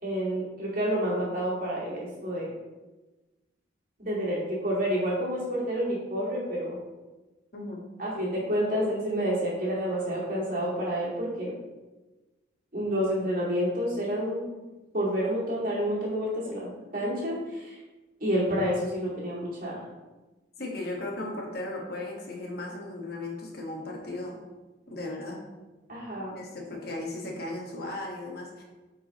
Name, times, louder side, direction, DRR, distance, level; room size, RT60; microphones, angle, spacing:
voice 1, 0.0-2.5 4.0-6.8 8.0-11.5 12.7-14.5 14.9-17.8 18.2-19.8 25.9-26.4 26.7-26.8, equal, 45° right, -6 dB, 2.3 m, -29 dB
voice 2, 20.6-24.4 24.9-25.4 26.3-28.6, left 2 dB, 55° left, -1 dB, 1.4 m, -36 dB
9.1 x 4.7 x 3.0 m, 1.2 s
head